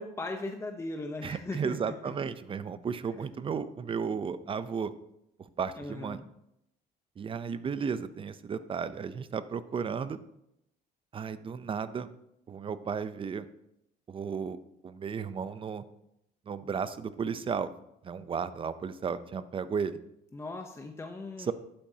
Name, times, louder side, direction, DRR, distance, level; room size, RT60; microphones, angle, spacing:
voice 1, 0.0-1.9 2.2-2.3 5.8-6.3 20.3-21.5, left 2 dB, 15° left, 4 dB, 0.8 m, -38 dB
voice 2, 1.2-4.9 5.6-6.2 7.2-10.2 11.1-12.1 12.5-13.5 14.1-14.6 14.8-15.8 16.5-17.7 18.0-20.0 21.4-21.5, right 6 dB, 30° right, 14 dB, 0.6 m, -34 dB
12.0 x 8.9 x 2.8 m, 0.81 s
cardioid pair, 110°, 17 cm